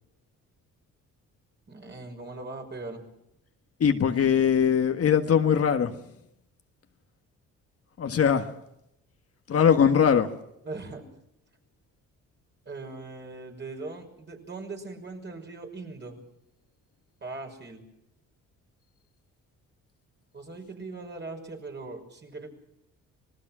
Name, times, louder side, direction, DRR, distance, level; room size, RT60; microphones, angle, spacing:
voice 1, 1.7-3.0 10.6-11.0 12.7-16.2 17.2-17.8 20.3-22.5, right 3 dB, 35° right, 2 dB, 6.1 m, -40 dB
voice 2, 3.8-5.9 8.0-8.5 9.5-10.3, left 7 dB, 50° left, 6 dB, 1.6 m, -21 dB
26.0 x 19.5 x 6.2 m, 0.81 s
cardioid pair, 90°, 30 cm